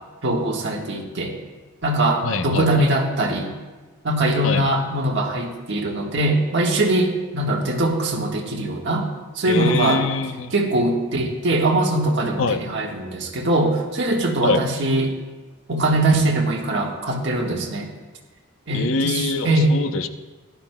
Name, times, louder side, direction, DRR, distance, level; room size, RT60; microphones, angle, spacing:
voice 1, 0.2-1.3 1.8-3.5 4.0-9.1 9.3-10.0 10.5-15.1 15.7-17.9 18.7-19.8, right 2 dB, 55° right, 0 dB, 1.5 m, -21 dB
voice 2, 2.2-2.9 4.4-4.7 9.5-10.5 12.4-12.6 14.4-14.6 18.7-20.1, left 4 dB, 65° left, 9 dB, 0.6 m, -24 dB
17.0 x 12.0 x 2.2 m, 1.3 s
head